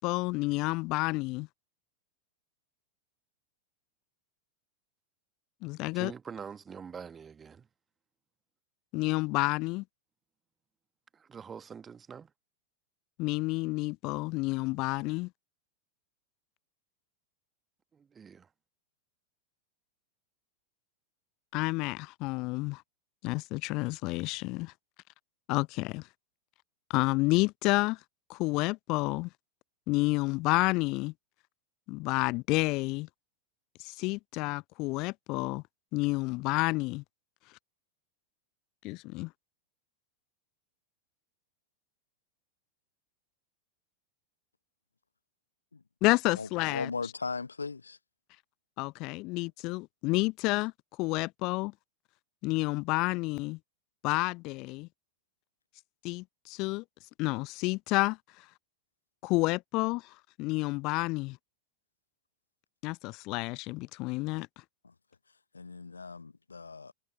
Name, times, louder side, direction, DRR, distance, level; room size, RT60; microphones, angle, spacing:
voice 1, 0.0-1.5 5.6-6.1 8.9-9.8 13.2-15.3 21.5-22.8 23.2-24.7 25.5-26.1 26.9-28.0 28.3-29.3 29.9-31.1 31.9-33.1 33.8-35.6 35.9-37.0 38.8-39.3 46.0-46.9 48.8-50.7 51.0-51.7 52.4-53.6 54.0-54.9 56.0-56.8 57.2-58.4 59.2-61.4 62.8-64.5, left 23 dB, 40° left, 0.7 m, -30 dB
voice 2, 5.9-7.7 11.1-12.3 17.9-18.5, right 6 dB, 20° right, 1.3 m, -45 dB
voice 3, 46.3-48.0 64.8-64.9 65.5-66.9, left 4 dB, 75° left, 0.8 m, -38 dB
figure-of-eight pair, 90°, 0 cm